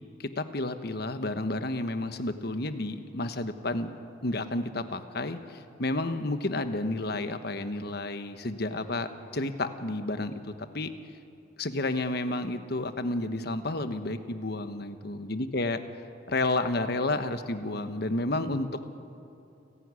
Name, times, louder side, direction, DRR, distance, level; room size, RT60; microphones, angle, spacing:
voice 1, 0.2-3.9 4.2-9.1 9.3-10.9 11.6-15.8 16.3-18.7, left 2 dB, 60° left, 9 dB, 1.2 m, -31 dB
29.0 x 11.5 x 9.7 m, 2.8 s
head